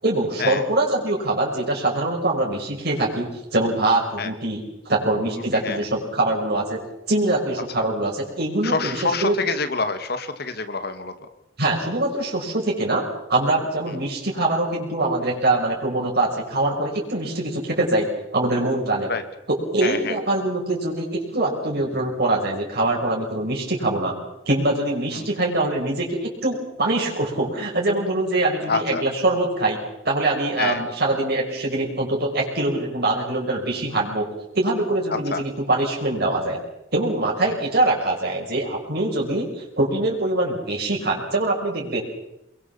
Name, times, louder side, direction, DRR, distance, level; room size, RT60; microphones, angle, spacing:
voice 1, 0.0-6.8 7.1-9.4 11.6-19.1 19.5-24.2 24.5-29.8 30.0-34.3 34.5-36.6 36.9-42.0, right 2 dB, 55° right, -1 dB, 5.9 m, -23 dB
voice 2, 5.3-5.8 8.6-11.1 19.1-19.2 19.8-20.1 25.1-25.3 28.7-29.0 30.6-30.8 35.1-35.4 37.4-37.5, left 4 dB, 55° left, 9 dB, 2.3 m, -26 dB
26.5 x 22.5 x 7.3 m, 0.84 s
head